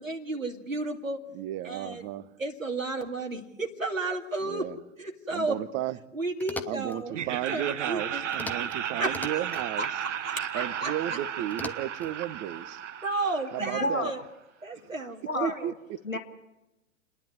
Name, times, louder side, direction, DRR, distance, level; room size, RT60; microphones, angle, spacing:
voice 1, 0.0-1.2 1.6-2.0 2.4-4.7 5.0-5.6 6.1-7.1 7.5-8.2 8.5-8.7 9.0-11.2 13.0-14.2 14.6-15.6, right 2 dB, 90° right, 2 dB, 2.4 m, -33 dB
voice 2, 1.3-2.3 4.4-4.8 5.3-6.0 6.7-9.9 10.5-12.8 13.5-14.1 15.4-16.2, right 13 dB, 30° right, 15 dB, 1.0 m, -34 dB
sound 1, 6.4-7.0 8.3-8.8 9.0-9.7 11.5-12.1, left 3 dB, 5° left, 0.8 m, -40 dB
Laughter, 7.1-14.1, right 9 dB, 65° right, 1.0 m, -34 dB
voice 3, 13.6-14.1 15.3-15.7 16.1-16.2, left 2 dB, 90° left, 4 dB, 2.2 m, -30 dB
29.5 x 10.5 x 9.5 m, 0.96 s
figure-of-eight pair, 105°, 39 cm